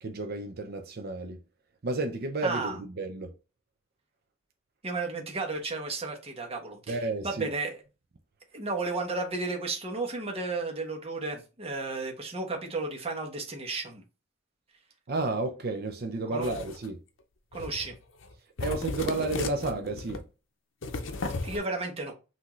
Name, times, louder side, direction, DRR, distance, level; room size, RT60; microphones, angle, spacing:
voice 1, 0.0-1.4 1.8-3.3 6.9-7.5 15.1-17.0 18.6-20.2, right 2 dB, 55° right, 0.6 m, -32 dB
voice 2, 2.4-2.8 4.8-7.0 7.2-7.8 8.5-14.0 16.3-16.5 17.5-17.9 21.4-22.1, right 3 dB, 30° right, 1.2 m, -33 dB
sound 1, 16.4-16.9 17.5-17.9 18.2-18.3 18.6-20.2 20.8-21.6, left 3 dB, 75° left, 0.7 m, -35 dB
5.9 x 2.8 x 3.1 m
head